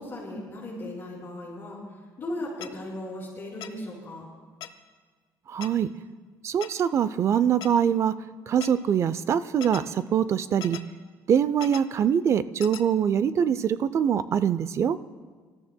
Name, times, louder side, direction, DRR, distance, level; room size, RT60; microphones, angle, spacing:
voice 1, 0.0-1.8 2.2-4.2, left 1 dB, 35° left, -7 dB, 4.8 m, -37 dB
sound 1, 2.6-2.7 3.6-3.7 4.6-4.7 5.6-5.7 6.6-6.7 7.6-7.7 8.6-8.7 9.6-9.8 10.6-10.8 11.6-11.8 12.6-12.8, left 12 dB, 75° left, 0.6 m, -38 dB
voice 2, 5.5-5.9 6.4-8.2 8.5-10.8 11.3-15.0, right 8 dB, 45° right, 15 dB, 0.4 m, -23 dB
24.0 x 13.5 x 2.2 m, 1.5 s
cardioid pair, 115°, 7 cm